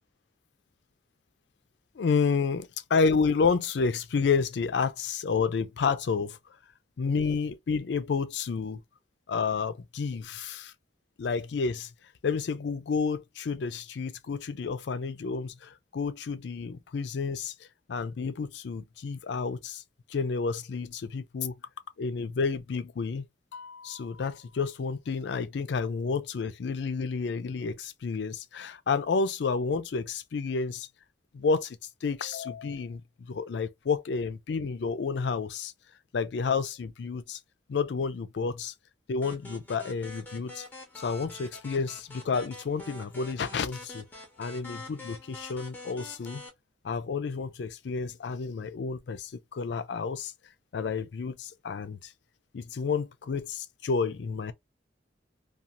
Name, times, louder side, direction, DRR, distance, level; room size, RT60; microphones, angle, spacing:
voice 1, 2.0-6.4 7.0-8.8 9.3-10.7 11.2-11.9 12.2-19.8 20.1-21.6 22.0-23.3 23.5-30.9 31.3-35.7 36.1-37.4 37.7-38.7 39.1-40.7 41.0-44.0 44.4-46.4 46.8-50.3 50.7-52.1 52.5-54.5, left 5 dB, 75° left, 0.4 m, -30 dB
sound 1, 39.2-46.5, left 2 dB, 10° left, 0.8 m, -46 dB
2.5 x 2.3 x 2.8 m
head